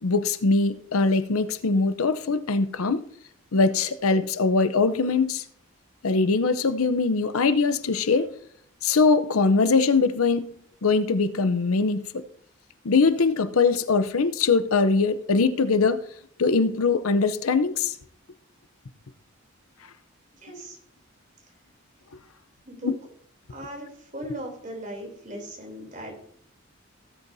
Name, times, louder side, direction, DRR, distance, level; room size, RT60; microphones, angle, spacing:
voice 1, 0.0-3.0 3.5-5.4 6.0-8.3 8.8-10.5 10.8-12.2 12.8-16.0 16.4-17.9 22.8-23.0, left 4 dB, 85° left, 0.7 m, -22 dB
voice 2, 20.3-20.8 22.6-22.9 23.5-26.2, right 1 dB, 35° right, 3.2 m, -38 dB
17.5 x 8.2 x 2.7 m
head